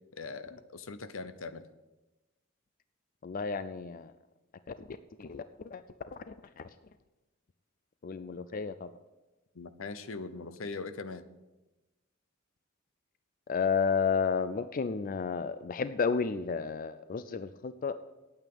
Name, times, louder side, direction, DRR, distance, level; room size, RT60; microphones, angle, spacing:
voice 1, 0.1-1.6 9.5-11.2, left 4 dB, 80° left, 12 dB, 0.8 m, -41 dB
voice 2, 3.2-4.1 4.8-5.8 6.1-6.7 8.0-8.9 13.5-17.9, left 5 dB, 45° left, 12 dB, 0.4 m, -32 dB
9.0 x 8.9 x 7.8 m, 1.1 s
head